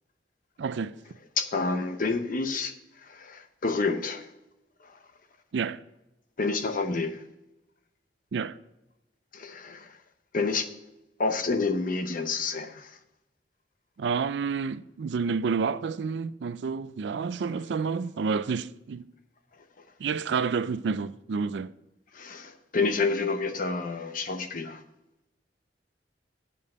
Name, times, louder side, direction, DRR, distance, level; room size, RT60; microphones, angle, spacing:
voice 1, 0.6-0.9 5.5-5.8 8.3-8.6 14.0-19.1 20.0-21.7, right 5 dB, 70° right, 0.4 m, -29 dB
voice 2, 1.4-2.7 3.1-4.3 6.4-7.2 9.3-9.9 10.3-10.7 11.2-12.9 22.1-24.8, left 4 dB, 50° left, 0.8 m, -29 dB
8.5 x 5.4 x 7.8 m
head